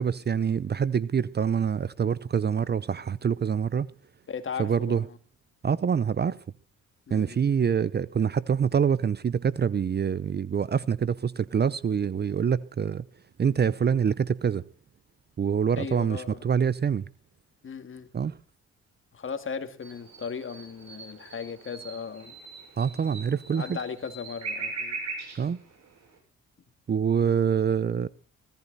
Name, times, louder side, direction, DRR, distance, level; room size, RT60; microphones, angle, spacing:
voice 1, 0.0-3.9 4.6-5.0 5.6-6.4 7.1-13.0 13.4-14.6 15.4-17.0 18.1-18.3 22.8-23.8 25.3-25.6 26.9-28.1, right 7 dB, 35° right, 0.7 m, -25 dB
voice 2, 4.3-5.2 7.1-7.4 15.7-16.5 17.6-18.1 19.1-22.4 23.5-25.0, left 6 dB, 40° left, 2.2 m, -37 dB
sound 1, 19.8-26.2, right 3 dB, 60° right, 7.6 m, -40 dB
17.5 x 14.5 x 4.1 m
cardioid pair, 90°, 30 cm